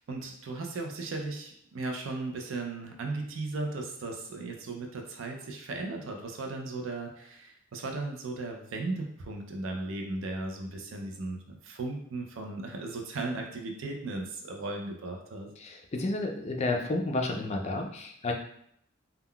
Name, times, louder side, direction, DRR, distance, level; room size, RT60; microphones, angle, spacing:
voice 1, 0.0-15.5, right 2 dB, 75° right, 2 dB, 0.4 m, -36 dB
voice 2, 15.6-18.3, left 2 dB, 35° left, 1 dB, 0.4 m, -31 dB
3.6 x 2.2 x 2.2 m, 0.71 s
head